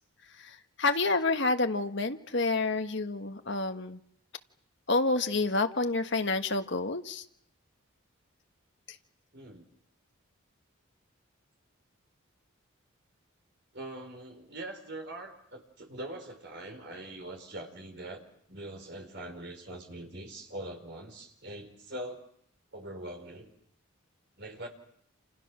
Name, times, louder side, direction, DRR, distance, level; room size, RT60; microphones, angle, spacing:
voice 1, 0.4-4.0 4.9-7.2, left 3 dB, 55° left, 7 dB, 1.5 m, -29 dB
voice 2, 9.3-9.6 13.7-18.2 18.5-22.2 22.7-23.5 24.4-24.7, right 1 dB, 50° right, 5 dB, 4.6 m, -42 dB
28.5 x 28.5 x 6.3 m, 0.70 s
head